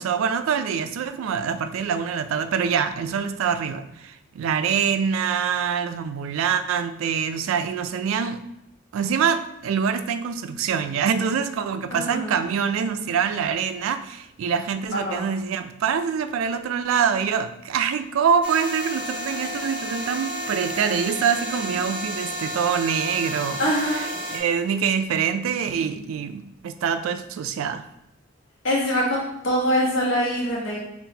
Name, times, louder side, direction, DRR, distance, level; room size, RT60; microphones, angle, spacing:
voice 1, 0.0-8.4 8.9-27.9, right 7 dB, 80° right, 10 dB, 0.3 m, -25 dB
voice 2, 11.9-12.3 15.0-15.2 23.6-24.1 28.6-30.8, equal, 70° left, -4 dB, 1.0 m, -23 dB
sound 1, 18.4-24.4, equal, 25° right, 0.9 m, -31 dB
5.6 x 2.4 x 2.7 m, 0.84 s
head